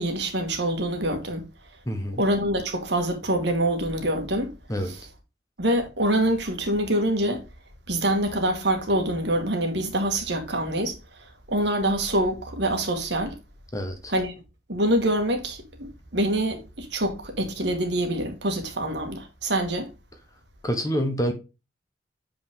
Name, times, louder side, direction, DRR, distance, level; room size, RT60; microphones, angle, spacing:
voice 1, 0.0-1.5 2.2-4.5 4.9-5.0 5.6-7.4 7.9-11.0 11.5-13.4 14.1-14.3 14.7-19.9, right 1 dB, 65° right, 1.8 m, -25 dB
voice 2, 1.9-2.2 4.7-4.9 13.7-14.1 20.6-21.3, equal, 20° left, 1.1 m, -27 dB
7.6 x 5.2 x 3.6 m
head